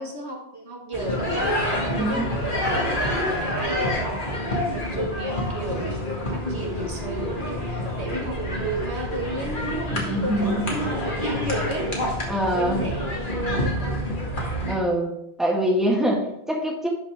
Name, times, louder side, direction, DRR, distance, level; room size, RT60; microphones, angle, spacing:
voice 1, 0.0-1.6 2.0-13.0 13.6-14.0, right 1 dB, 80° right, 0 dB, 2.0 m, -33 dB
sound 1, 0.9-14.7, equal, 50° left, 2.1 m, -27 dB
voice 2, 2.0-2.3 9.9-10.7 12.3-12.9 14.7-16.9, equal, ahead, -1 dB, 1.7 m, -24 dB
11.5 x 5.5 x 3.6 m, 0.79 s
omnidirectional pair, 1.1 m